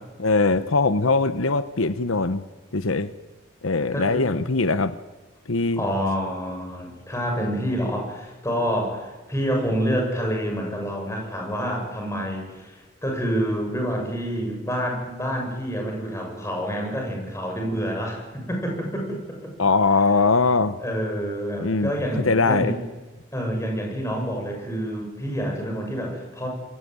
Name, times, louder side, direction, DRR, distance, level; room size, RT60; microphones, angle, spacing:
voice 1, 0.2-2.4 2.7-3.1 3.6-4.9 5.5-5.8 19.6-20.8 21.6-21.9 22.2-22.7, left 3 dB, 80° left, 13 dB, 1.0 m, -21 dB
voice 2, 3.9-4.2 5.8-19.5 20.8-22.8 23.3-26.5, equal, 15° left, 1 dB, 7.6 m, -28 dB
27.0 x 21.5 x 9.6 m, 1.2 s
head